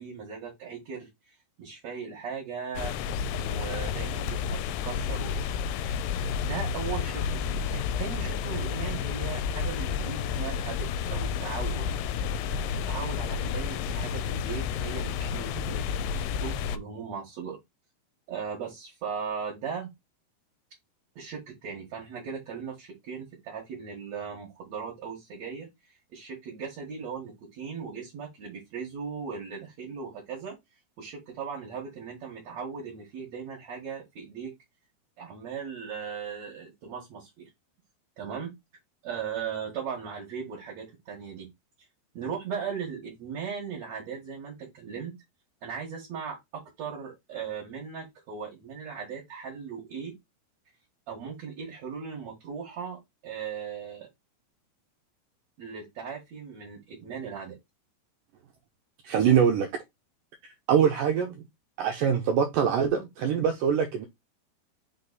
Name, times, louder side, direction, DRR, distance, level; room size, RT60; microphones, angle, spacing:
voice 1, 0.0-2.9 3.3-5.4 5.9-6.1 6.4-11.9 12.9-15.9 16.4-17.6 18.3-19.9 21.2-30.6 31.0-34.5 35.2-37.5 38.2-38.5 39.0-41.5 42.1-45.1 45.6-50.1 51.1-54.1 55.6-57.6, right 6 dB, 55° right, 2.4 m, -38 dB
sound 1, 2.8-16.8, left 6 dB, 85° left, 2.6 m, -31 dB
voice 2, 59.0-59.7 60.7-61.4 61.8-64.1, right 8 dB, 75° right, 2.0 m, -23 dB
5.8 x 4.0 x 4.1 m
omnidirectional pair, 4.7 m